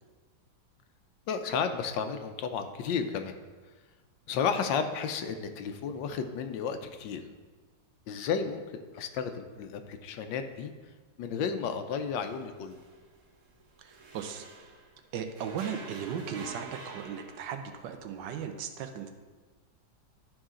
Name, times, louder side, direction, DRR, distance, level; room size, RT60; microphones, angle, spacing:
voice 1, 1.3-3.4 4.3-7.2 8.1-10.7 11.2-12.8, left 6 dB, 80° left, 8 dB, 1.3 m, -32 dB
sound 1, 12.2-15.0 15.4-17.8, right 3 dB, 50° right, 1.1 m, -48 dB
voice 2, 13.8-14.7 15.1-19.1, right 7 dB, 80° right, 7 dB, 1.3 m, -37 dB
11.5 x 4.8 x 3.7 m, 1.4 s
omnidirectional pair, 2.0 m